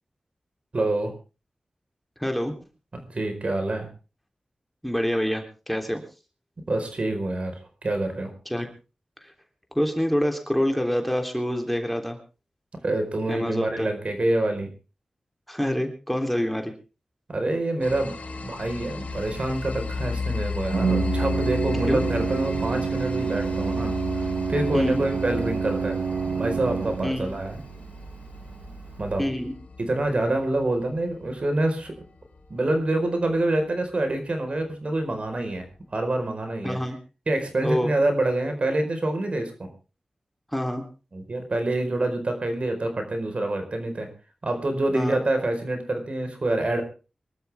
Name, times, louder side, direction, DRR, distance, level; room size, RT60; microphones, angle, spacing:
voice 1, 0.7-1.1 2.9-3.9 6.7-7.6 7.8-8.3 12.8-14.7 17.3-18.1 18.4-23.9 24.5-26.0 26.2-27.6 29.0-29.2 29.8-31.9 32.5-35.6 35.9-36.8 37.3-39.7 41.1-44.1 44.4-46.8, right 2 dB, 60° right, 6 dB, 4.7 m, -26 dB
voice 2, 2.2-2.5 4.8-6.0 8.4-8.7 9.2-9.3 9.7-12.2 13.3-13.9 15.5-16.7 21.9-22.0 24.7-25.0 27.0-27.3 29.2-29.5 36.6-37.0 37.6-37.9 40.5-40.9 44.9-45.2, equal, 5° left, 4 dB, 3.4 m, -26 dB
sound 1, 17.8-33.3, left 4 dB, 75° left, 5.0 m, -35 dB
Organ, 19.1-29.3, right 5 dB, 80° right, 1.4 m, -29 dB
24.5 x 12.5 x 3.6 m, 0.33 s
wide cardioid pair, 60°, 2 cm